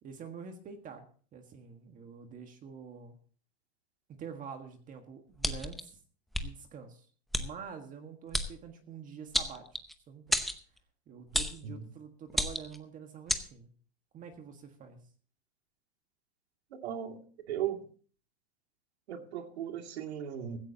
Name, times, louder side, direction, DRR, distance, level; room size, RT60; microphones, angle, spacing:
voice 1, 0.0-3.2 4.1-6.0 6.3-7.1 7.4-9.6 10.1-10.4 11.1-13.7 14.1-15.1, right 6 dB, 25° right, 6 dB, 1.6 m, -47 dB
sound 1, 5.4-5.8 6.3-6.5 7.3-7.5 8.3-8.5 9.3-9.9 10.3-10.6 11.3-11.6 12.3-12.8 13.3-13.4, equal, ahead, 0.8 m, -30 dB
voice 2, 16.7-17.2 17.5-17.8 19.1-20.6, right 10 dB, 90° right, 4 dB, 2.5 m, -37 dB
16.0 x 15.5 x 2.8 m, 0.44 s
supercardioid pair, 150°, 31 cm